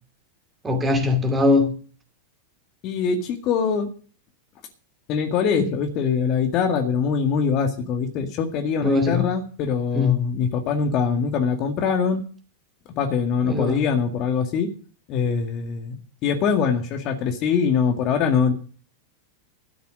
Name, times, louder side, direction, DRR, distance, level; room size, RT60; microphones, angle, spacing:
voice 1, 0.6-1.7 8.8-9.3 9.9-10.1 13.5-13.8, left 3 dB, 15° right, 2.6 m, -20 dB
voice 2, 2.8-3.9 5.1-12.2 13.0-14.7 15.1-15.9 16.2-18.5, left 6 dB, 40° left, 1.9 m, -23 dB
13.0 x 8.2 x 6.4 m
figure-of-eight pair, 90°, 0 cm